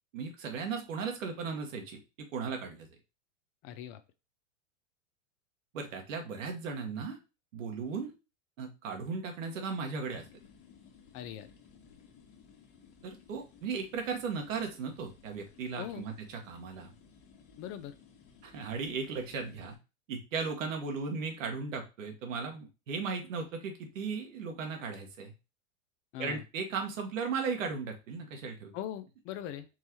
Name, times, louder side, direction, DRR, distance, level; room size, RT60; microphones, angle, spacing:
voice 1, 0.1-2.9 5.7-7.2 7.5-8.1 8.6-10.2 13.0-16.9 18.4-19.8 20.1-25.3 26.2-28.7, right 5 dB, 75° right, 3 dB, 1.5 m, -36 dB
voice 2, 3.6-4.0 11.1-11.5 15.8-16.1 17.6-17.9 26.1-26.4 28.7-29.7, left 11 dB, 35° left, 11 dB, 0.4 m, -40 dB
sound 1, 10.1-19.8, left 6 dB, 55° left, 1.4 m, -58 dB
4.5 x 3.3 x 2.9 m, 0.28 s
hypercardioid pair, 105°, 39 cm